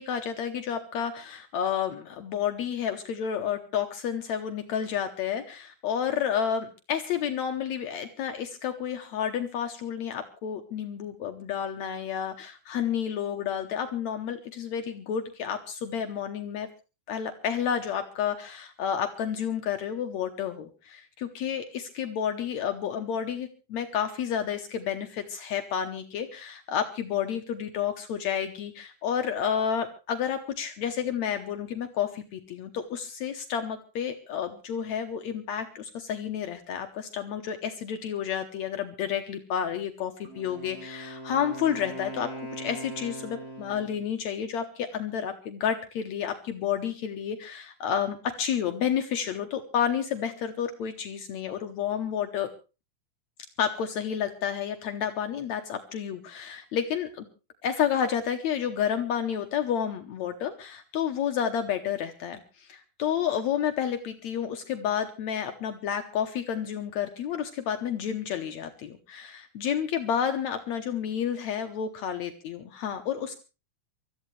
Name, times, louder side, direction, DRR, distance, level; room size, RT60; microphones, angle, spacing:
voice 1, 0.0-16.7 17.1-42.3 42.6-52.5 53.6-57.3 57.6-73.4, left 8 dB, 70° left, 6 dB, 2.2 m, -30 dB
Wind instrument woodwind instrument, 40.2-44.1, right 1 dB, 25° right, 4.9 m, -40 dB
24.5 x 14.0 x 3.2 m, 0.32 s
omnidirectional pair, 3.5 m